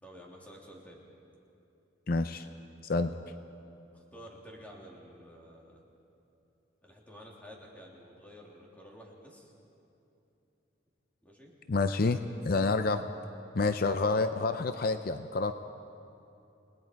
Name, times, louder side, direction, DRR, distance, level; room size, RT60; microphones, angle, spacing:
voice 1, 0.0-1.0 3.9-5.8 6.8-9.5 11.2-11.6, equal, 10° left, -3 dB, 3.1 m, -51 dB
voice 2, 2.1-2.5 2.8-3.1 11.7-12.2 12.4-13.0 13.5-15.5, left 3 dB, 50° left, 9 dB, 0.5 m, -28 dB
29.5 x 19.0 x 4.7 m, 2.8 s
head